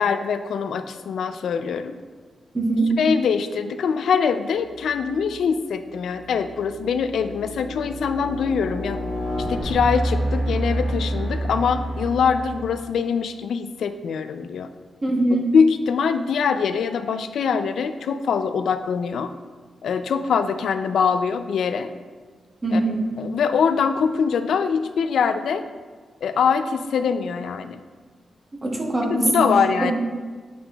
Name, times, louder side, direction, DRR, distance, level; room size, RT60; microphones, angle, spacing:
voice 1, 0.0-2.0 3.0-9.0 9.5-14.7 15.5-19.3 19.8-21.9 22.7-22.8 23.2-25.6 26.2-27.8 29.0-29.9, left 6 dB, 85° left, 9 dB, 0.3 m, -23 dB
voice 2, 2.5-2.9 15.0-15.5 22.6-23.0 28.6-29.5 29.8-29.9, right 2 dB, 20° right, -1 dB, 0.9 m, -22 dB
sound 1, 5.1-5.4 6.0-12.8, right 1 dB, 55° right, 1.7 m, -28 dB
8.4 x 5.7 x 2.3 m, 1.5 s
wide cardioid pair, 180°, 0 cm